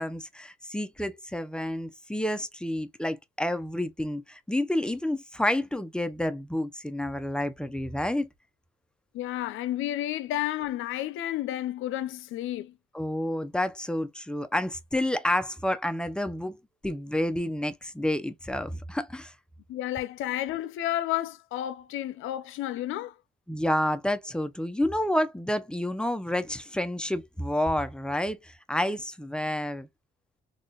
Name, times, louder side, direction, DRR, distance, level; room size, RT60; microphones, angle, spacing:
voice 1, 0.0-8.3 12.9-19.3 23.5-29.9, left 1 dB, 5° left, 0.6 m, -29 dB
voice 2, 9.1-12.8 19.7-23.1, left 13 dB, 85° left, 0.5 m, -31 dB
3.8 x 2.4 x 2.3 m
cardioid pair, 90°, 20 cm